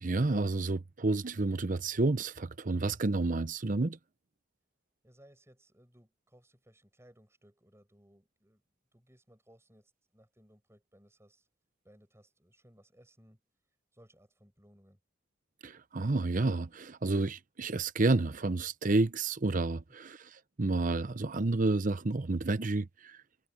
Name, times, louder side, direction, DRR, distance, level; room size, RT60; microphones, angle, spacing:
voice 1, 0.0-4.0 15.6-23.2, right 2 dB, 45° right, 0.7 m, -30 dB
voice 2, 5.0-8.6 8.9-11.5 11.8-13.4 13.9-15.0, equal, 15° right, 8.0 m, -62 dB
head